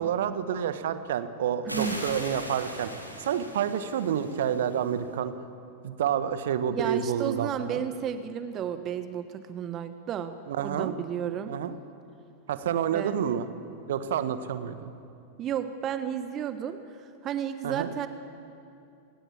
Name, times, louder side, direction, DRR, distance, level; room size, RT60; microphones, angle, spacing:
voice 1, 0.0-2.9 3.2-5.3 5.8-7.8 10.5-10.9 11.5-11.8 12.5-13.5 13.9-14.9 17.6-17.9, right 9 dB, 60° right, 11 dB, 1.4 m, -29 dB
voice 2, 1.7-2.0 6.7-10.4 10.6-11.5 12.9-13.2 15.4-18.1, right 9 dB, 30° right, 10 dB, 1.2 m, -32 dB
sound 1, 1.7-5.0, equal, 90° right, 3.6 m, -40 dB
27.5 x 18.5 x 8.5 m, 2.6 s
figure-of-eight pair, 90°, 0 cm